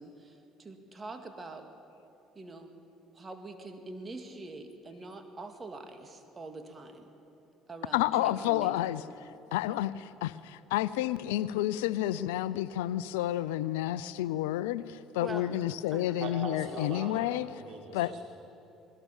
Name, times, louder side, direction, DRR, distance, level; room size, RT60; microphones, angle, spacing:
voice 1, 0.0-1.7 2.4-2.7 3.1-7.1 7.7-8.8 15.2-15.5 15.9-16.2, right 3 dB, 30° right, 6 dB, 2.3 m, -44 dB
voice 2, 7.9-9.0 9.5-17.5 17.9-18.1, left 14 dB, 85° left, 16 dB, 0.5 m, -30 dB
voice 3, 16.2-18.2, right 3 dB, 55° right, -1 dB, 5.2 m, -41 dB
20.5 x 17.5 x 7.3 m, 2.9 s
hypercardioid pair, 70°, 0 cm